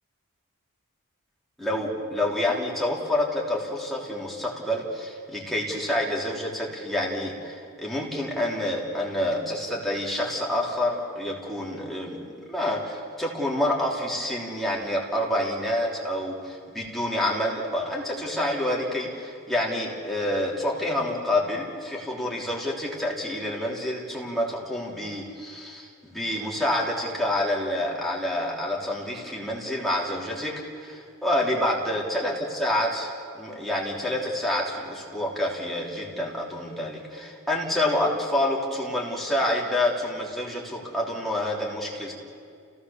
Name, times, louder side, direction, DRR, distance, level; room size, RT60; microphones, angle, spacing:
voice 1, 1.6-42.1, left 1 dB, ahead, -4 dB, 3.4 m, -28 dB
29.5 x 16.5 x 7.1 m, 2.3 s
head